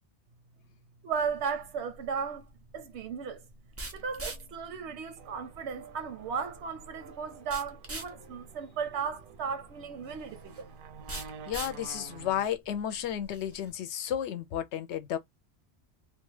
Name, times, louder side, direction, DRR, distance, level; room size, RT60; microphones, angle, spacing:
voice 1, 1.0-2.5 2.7-3.5 3.9-10.7, right 6 dB, 85° right, 0.9 m, -35 dB
sound 1, 1.1-13.7, right 2 dB, 20° right, 0.3 m, -46 dB
sound 2, 5.2-12.5, right 6 dB, 60° right, 0.6 m, -50 dB
voice 2, 11.5-15.2, left 10 dB, 80° left, 0.8 m, -33 dB
2.4 x 2.3 x 3.1 m
omnidirectional pair, 1.1 m